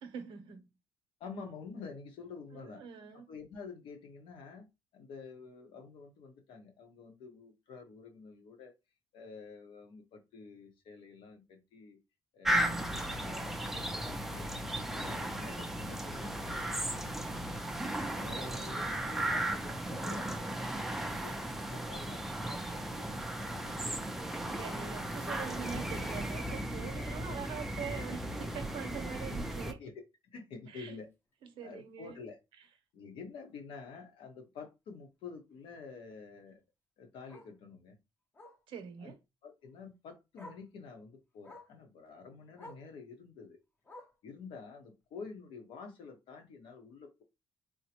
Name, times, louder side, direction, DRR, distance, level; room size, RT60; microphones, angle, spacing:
voice 1, 0.0-0.7 2.5-3.3 18.0-18.6 24.5-29.8 30.7-31.0 31.5-32.2 38.7-39.2, right 7 dB, 75° right, 0.7 m, -44 dB
voice 2, 1.2-2.8 3.1-4.7 4.9-8.7 9.1-12.0 12.3-14.5 14.9-17.4 18.1-25.0 25.2-25.6 29.6-30.0 30.3-31.1 31.6-32.4 32.9-36.6 37.0-38.0 39.0-39.1 39.4-43.6 44.2-47.2, left 5 dB, 80° left, 1.0 m, -49 dB
sound 1, 12.4-29.7, right 1 dB, 5° right, 0.4 m, -36 dB
Bark, 30.8-31.0 31.4-31.5 31.9-32.0 32.3-32.4 33.8-33.9 36.4-36.5 37.3-37.6 38.3-38.7 39.8-39.9 40.4-40.7 41.4-41.8 42.6-42.9 43.8-44.3 45.3-45.4, left 1 dB, 25° left, 0.8 m, -52 dB
3.7 x 2.1 x 2.8 m
cardioid pair, 140°, 9 cm